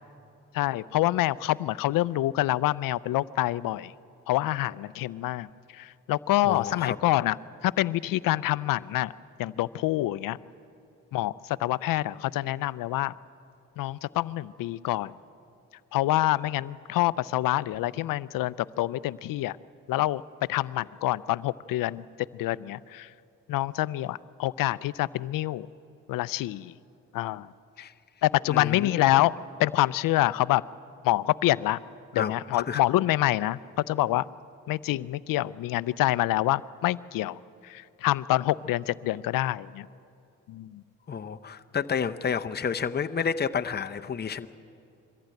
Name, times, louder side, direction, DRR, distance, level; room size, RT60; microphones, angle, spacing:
voice 1, 0.5-3.9 4.3-7.4 7.6-9.1 9.4-10.4 11.1-13.1 13.8-15.1 15.9-19.6 19.9-20.2 20.5-22.0 22.4-23.1 23.5-25.7 26.1-26.7 27.1-27.5 28.2-29.3 29.6-30.6 31.0-31.8 32.1-34.3 34.7-39.9 40.5-40.8, left 16 dB, 85° left, 19 dB, 0.5 m, -26 dB
voice 2, 6.4-7.0 27.8-27.9 28.5-29.0 32.2-32.8 41.1-44.5, left 6 dB, 30° left, 8 dB, 0.7 m, -30 dB
22.5 x 15.0 x 9.2 m, 2.6 s
cardioid pair, 75°, 32 cm